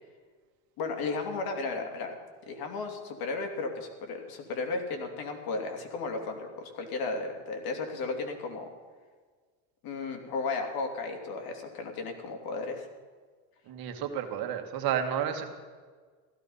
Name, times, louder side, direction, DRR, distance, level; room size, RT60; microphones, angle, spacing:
voice 1, 0.8-2.2 2.5-8.7 9.8-12.9, left 3 dB, 55° left, 3 dB, 2.9 m, -34 dB
voice 2, 13.7-15.5, right 9 dB, 55° right, 6 dB, 1.9 m, -31 dB
16.0 x 14.5 x 5.6 m, 1.5 s
cardioid pair, 125°, 42 cm